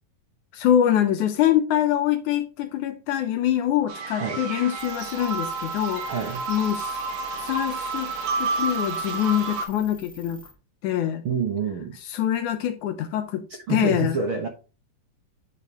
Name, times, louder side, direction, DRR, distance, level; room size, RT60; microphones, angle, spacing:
voice 1, 0.5-6.2 6.5-6.9 7.4-8.1 8.4-10.4 10.8-11.2 12.1-14.2, left 11 dB, 75° left, 2.1 m, -24 dB
sound 1, 3.9-9.7, right 4 dB, 75° right, 3.1 m, -30 dB
sound 2, 4.8-10.5, left 1 dB, 5° left, 0.6 m, -49 dB
voice 2, 6.1-6.4 11.2-12.0 13.7-14.5, right 5 dB, 55° right, 1.4 m, -27 dB
9.4 x 5.2 x 2.9 m
omnidirectional pair, 3.9 m